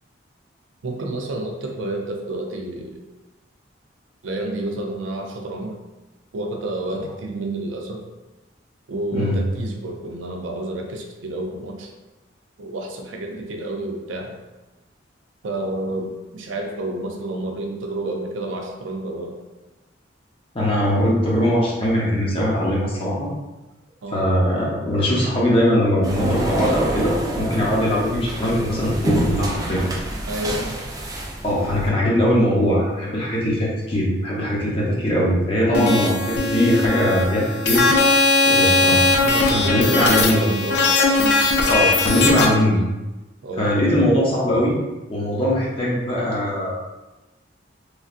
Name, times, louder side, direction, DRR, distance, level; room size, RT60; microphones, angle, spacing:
voice 1, 0.8-3.0 4.2-5.7 6.3-8.0 8.9-11.9 12.6-14.3 15.4-19.4 24.0-24.2 30.3-30.8 35.7-35.9 39.2-41.5 43.4-43.8, right 2 dB, 85° right, 2 dB, 0.5 m, -29 dB
voice 2, 20.5-23.3 24.1-29.8 31.4-36.1 36.4-37.8 38.4-39.0 39.4-40.4 41.7-42.8 43.6-44.8 45.1-46.8, equal, 30° left, -5 dB, 0.7 m, -20 dB
sound 1, 26.0-31.9, right 1 dB, 20° right, 0.3 m, -27 dB
sound 2, 35.7-42.4, left 3 dB, 65° left, 0.4 m, -19 dB
3.2 x 2.6 x 2.4 m, 1.1 s
head